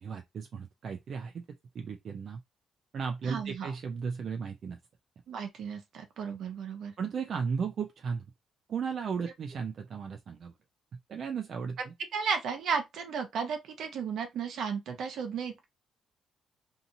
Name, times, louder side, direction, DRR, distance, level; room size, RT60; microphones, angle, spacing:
voice 1, 0.0-1.4 1.7-2.4 2.9-4.8 7.0-8.2 8.7-10.5 11.1-11.9, right 6 dB, 50° right, 0.4 m, -35 dB
voice 2, 3.2-3.7 5.3-6.9 12.1-15.6, right 6 dB, 70° right, 0.8 m, -34 dB
2.7 x 2.6 x 2.6 m
cardioid pair, 120°, 0 cm